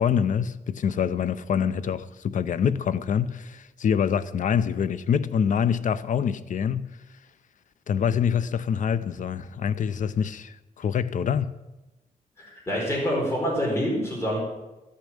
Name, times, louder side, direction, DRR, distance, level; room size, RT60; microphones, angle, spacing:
voice 1, 0.0-6.9 7.9-11.5, left 7 dB, 65° left, 0.6 m, -25 dB
voice 2, 12.4-14.4, equal, 20° left, 4.6 m, -26 dB
13.0 x 6.6 x 8.6 m
wide cardioid pair, 150°, 14 cm